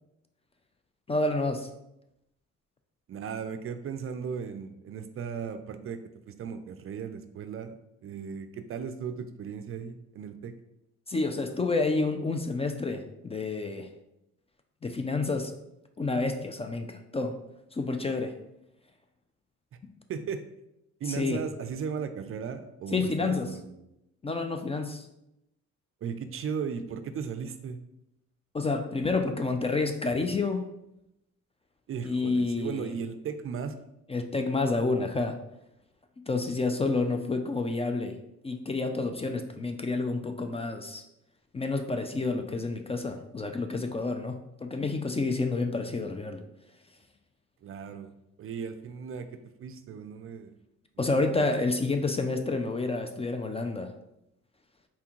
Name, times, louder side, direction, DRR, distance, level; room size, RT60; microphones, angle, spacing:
voice 1, 1.1-1.7 11.1-13.9 14.8-15.5 16.0-17.4 17.7-18.4 21.1-21.4 22.9-23.5 24.2-25.1 28.5-30.6 32.0-32.9 34.1-35.4 36.3-38.2 38.4-41.0 41.5-46.4 51.0-53.9, left 3 dB, 20° left, 6 dB, 0.3 m, -29 dB
voice 2, 3.1-6.0 6.3-10.5 20.1-20.4 21.0-23.9 26.0-27.8 31.9-33.7 47.6-48.1 48.4-50.5 51.0-51.5, right 6 dB, 45° right, 9 dB, 0.4 m, -36 dB
4.3 x 3.5 x 3.0 m, 0.85 s
cardioid pair, 90°, 30 cm